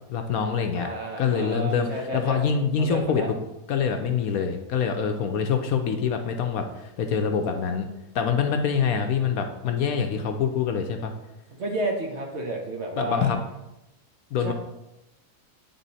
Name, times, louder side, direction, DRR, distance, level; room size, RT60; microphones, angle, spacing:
voice 1, 0.1-0.9 1.2-1.9 2.1-3.4 3.7-7.9 8.1-11.1 13.0-13.4 14.3-14.5, left 6 dB, 70° left, 5 dB, 1.0 m, -25 dB
voice 2, 0.7-2.5 2.8-3.3 11.6-13.3 14.4-14.5, right 2 dB, 50° right, 1 dB, 1.2 m, -31 dB
9.2 x 3.7 x 4.1 m, 0.93 s
omnidirectional pair, 1.7 m